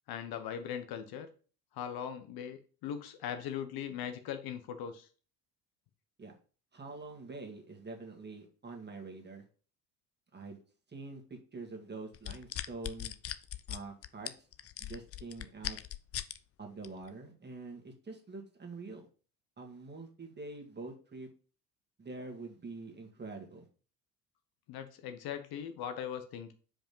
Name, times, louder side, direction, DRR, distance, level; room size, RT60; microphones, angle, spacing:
voice 1, 0.1-1.3 1.7-5.1 24.7-26.5, left 9 dB, 50° left, 8 dB, 1.0 m, -40 dB
voice 2, 6.7-9.4 10.3-10.6 10.9-13.1 13.7-14.5 14.8-15.8 16.6-19.0 19.6-21.3 22.0-23.7, right 3 dB, 20° right, 2 dB, 2.1 m, -45 dB
sound 1, 12.1-16.4 16.8-17.1, left 11 dB, 30° left, 0.6 m, -39 dB
5.1 x 5.1 x 5.5 m, 0.39 s
figure-of-eight pair, 60°, 46 cm